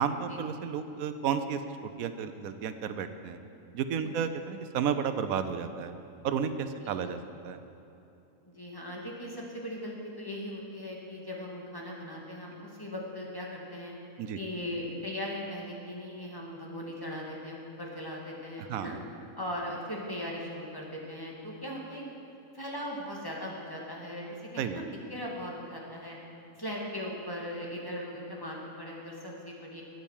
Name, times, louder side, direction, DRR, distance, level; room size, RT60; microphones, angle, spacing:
voice 1, 0.0-1.6 2.0-3.4 3.7-5.9 6.2-7.2 7.4-7.6 14.2-14.4 18.7-19.0 24.6-24.8, right 7 dB, 85° right, 10 dB, 1.1 m, -32 dB
voice 2, 8.5-13.9 14.3-18.9 19.4-22.0 22.5-26.2 26.6-29.8, left 1 dB, 15° left, -3 dB, 2.0 m, -39 dB
12.5 x 9.2 x 7.3 m, 2.9 s
omnidirectional pair, 1.4 m